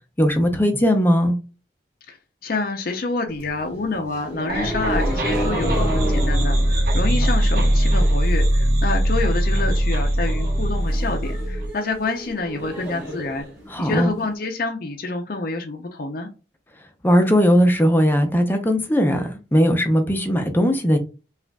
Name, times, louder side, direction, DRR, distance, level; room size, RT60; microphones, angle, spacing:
voice 1, 0.2-1.4 13.7-14.1 17.0-21.0, equal, 10° left, 0.6 m, -18 dB
voice 2, 2.4-13.5 13.8-16.3, left 3 dB, 55° left, 0.6 m, -27 dB
sound 1, 3.3-8.3 8.6-9.1 9.4-9.5 9.8-9.9 10.2-14.2, equal, 10° right, 1.8 m, -32 dB
sound 2, 4.5-11.7, right 1 dB, 55° right, 1.0 m, -20 dB
4.9 x 2.5 x 2.2 m
head